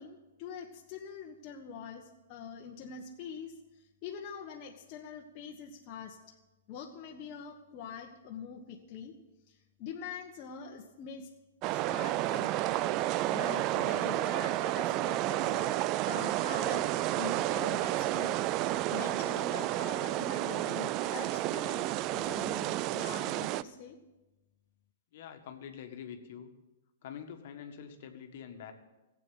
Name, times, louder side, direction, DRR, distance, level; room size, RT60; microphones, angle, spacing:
voice 1, 0.0-3.5 4.0-6.2 6.7-9.1 9.5-11.3 11.7-12.5 13.3-15.8 16.0-18.4 18.9-24.0, left 6 dB, 40° left, 0 dB, 1.3 m, -44 dB
sound 1, 11.6-23.6, right 15 dB, 35° right, 0.4 m, -31 dB
sound 2, 16.5-22.5, right 1 dB, 85° right, 6.3 m, -56 dB
voice 2, 25.1-26.5 27.0-28.7, left 8 dB, 55° left, 5 dB, 1.6 m, -45 dB
15.5 x 8.5 x 8.1 m, 1.1 s
hypercardioid pair, 115°, 0 cm